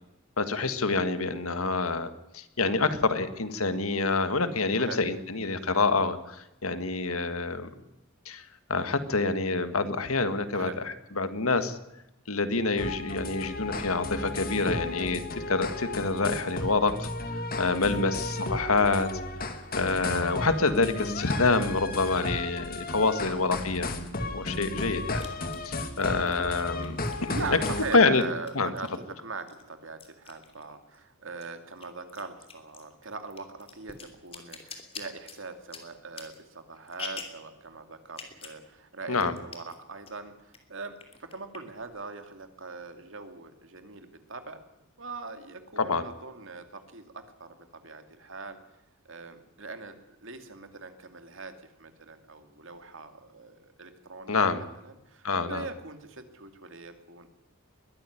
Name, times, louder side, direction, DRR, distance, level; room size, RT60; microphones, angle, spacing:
voice 1, 0.4-7.7 8.3-8.4 8.7-10.7 11.2-11.8 12.3-17.1 17.6-19.1 19.8-23.9 24.3-25.3 25.6-27.0 27.5-27.6 27.9-28.2 28.6-28.7 39.1-39.4 45.8-46.1 54.3-54.6 55.2-55.7, left 3 dB, 90° left, 10 dB, 1.7 m, -27 dB
sound 1, 12.8-27.9, left 2 dB, 45° left, 2.2 m, -34 dB
voice 2, 23.0-23.4 27.3-40.9 41.2-44.6 45.0-48.6 49.0-50.0 50.2-57.3, right 3 dB, 60° right, 7 dB, 2.5 m, -41 dB
sound 2, 23.4-23.5 25.2-29.1 29.5-31.0 31.3-37.5 38.1-38.6 38.9-39.0 39.2-39.8 40.1-40.6 41.0-41.8, left 5 dB, 30° left, 3.0 m, -45 dB
21.5 x 13.5 x 10.0 m, 0.92 s
head